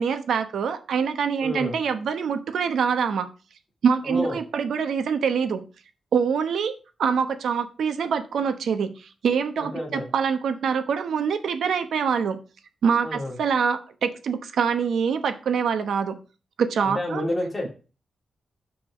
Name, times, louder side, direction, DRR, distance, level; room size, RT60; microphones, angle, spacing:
voice 1, 0.0-3.3 3.8-5.6 6.1-12.4 12.8-16.2 16.6-17.2, right 6 dB, 90° right, 9 dB, 0.9 m, -25 dB
voice 2, 1.4-1.8 4.0-4.4 9.6-10.1 13.0-13.4 16.8-17.7, left 1 dB, 15° left, -1 dB, 2.3 m, -29 dB
5.9 x 4.8 x 6.1 m, 0.34 s
wide cardioid pair, 170°, 0 cm